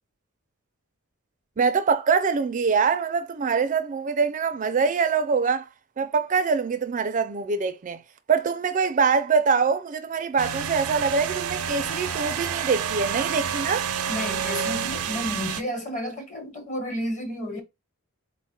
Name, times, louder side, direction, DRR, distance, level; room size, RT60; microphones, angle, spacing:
voice 1, 1.6-5.7 6.0-8.0 8.3-13.9, right 5 dB, 35° right, 0.4 m, -24 dB
sound 1, 10.4-15.6, right 7 dB, 85° right, 0.5 m, -29 dB
voice 2, 14.1-17.6, equal, 35° left, 1.1 m, -31 dB
4.1 x 2.3 x 4.3 m
head